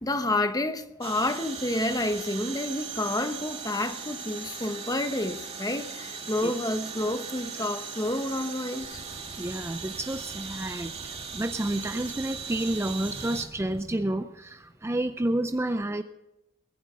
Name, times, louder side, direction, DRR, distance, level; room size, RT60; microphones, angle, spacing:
voice 1, 0.0-9.0, left 1 dB, 15° left, 1.0 m, -29 dB
sound 1, 1.0-13.5, right 6 dB, 30° right, 2.0 m, -39 dB
sound 2, 8.8-13.9, equal, 85° right, 3.5 m, -48 dB
voice 2, 9.4-10.9 11.3-16.0, right 1 dB, 10° right, 0.5 m, -30 dB
21.5 x 9.5 x 6.2 m
head